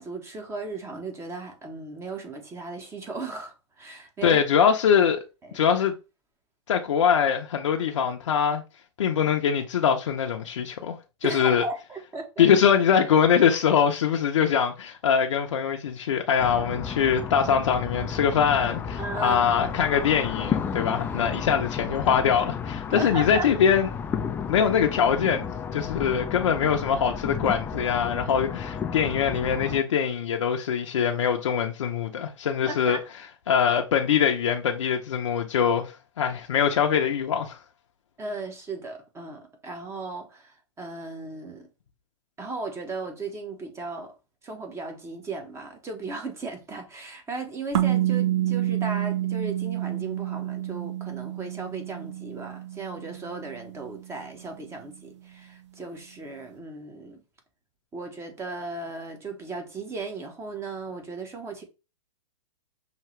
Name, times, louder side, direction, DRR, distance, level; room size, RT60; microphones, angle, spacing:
voice 1, 0.0-4.4 5.4-5.6 11.2-12.4 19.0-19.8 22.9-23.5 32.7-33.0 38.2-41.7 42.4-44.1 44.4-57.2 57.9-61.6, right 3 dB, 15° right, 1.1 m, -36 dB
voice 2, 4.2-5.2 5.5-5.9 6.7-8.6 9.0-10.9 11.2-11.6 12.4-23.9 24.5-25.4 25.7-33.0 33.5-37.6, left 7 dB, 75° left, 0.6 m, -23 dB
sound 1, 16.4-29.8, left 6 dB, 15° left, 0.3 m, -32 dB
sound 2, 47.7-54.2, right 13 dB, 70° right, 0.7 m, -29 dB
5.7 x 2.8 x 3.2 m
hypercardioid pair, 120°, 16 cm